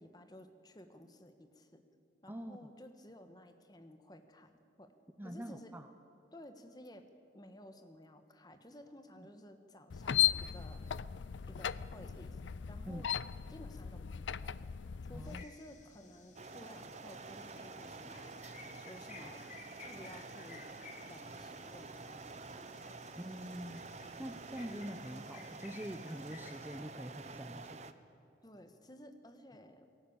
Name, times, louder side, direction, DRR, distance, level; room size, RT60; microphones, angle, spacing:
voice 1, 0.0-1.8 2.2-4.9 5.2-5.7 6.3-7.0 7.3-10.9 11.5-12.4 12.7-13.1 13.5-14.5 15.1-18.3 18.8-19.4 19.9-20.7 21.1-22.6 22.9-23.0 28.4-29.9, left 1 dB, 20° left, 7 dB, 1.3 m, -54 dB
voice 2, 2.3-2.7 5.2-5.9 9.2-9.3 12.9-13.0 15.1-15.4 23.2-23.8 24.2-27.8, equal, 10° right, 8 dB, 0.6 m, -44 dB
sound 1, 9.9-15.4, left 11 dB, 85° left, 0.5 m, -36 dB
sound 2, 15.2-26.8, left 4 dB, 40° left, 2.9 m, -57 dB
sound 3, 16.4-27.9, right 3 dB, 35° right, 0.8 m, -49 dB
19.0 x 17.5 x 8.8 m, 2.8 s
head